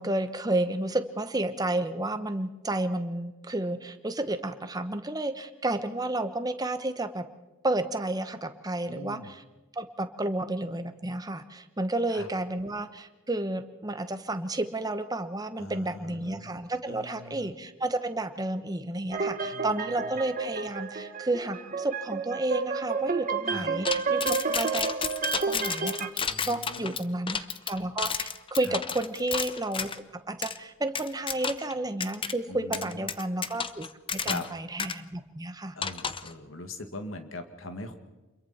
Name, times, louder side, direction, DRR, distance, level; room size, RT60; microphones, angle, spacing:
voice 1, 0.0-7.2 7.6-9.4 9.7-25.0 25.4-29.9 30.2-35.8, right 2 dB, 20° right, 9 dB, 1.1 m, -31 dB
voice 2, 8.9-9.3 12.1-12.3 15.6-16.5 16.9-17.5 19.4-20.1 23.5-23.7 26.3-27.0 28.6-28.8 32.5-33.1 34.2-34.5 35.7-38.0, left 2 dB, 75° left, 7 dB, 2.1 m, -41 dB
sound 1, 19.1-26.1, right 5 dB, 40° right, 1.2 m, -31 dB
sound 2, 23.8-30.0 30.4-30.6 30.9-31.7 32.0-32.3 32.7-34.5 34.8-34.9 35.8-36.3, left 6 dB, 25° left, 0.8 m, -32 dB
28.0 x 22.5 x 4.4 m, 1.2 s
head